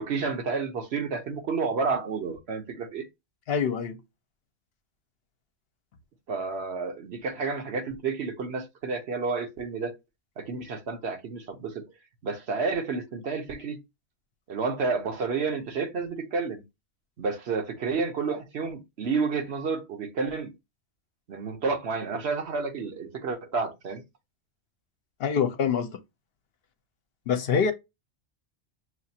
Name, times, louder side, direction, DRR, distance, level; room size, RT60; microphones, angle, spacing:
voice 1, 0.0-3.1 6.3-10.0 10.4-11.8 12.2-13.8 14.5-16.6 17.2-20.5 21.3-24.0, right 4 dB, 70° right, 1.2 m, -30 dB
voice 2, 3.5-4.0 25.2-26.0 27.3-27.7, left 7 dB, 65° left, 0.8 m, -25 dB
6.3 x 2.4 x 2.7 m
omnidirectional pair, 1.1 m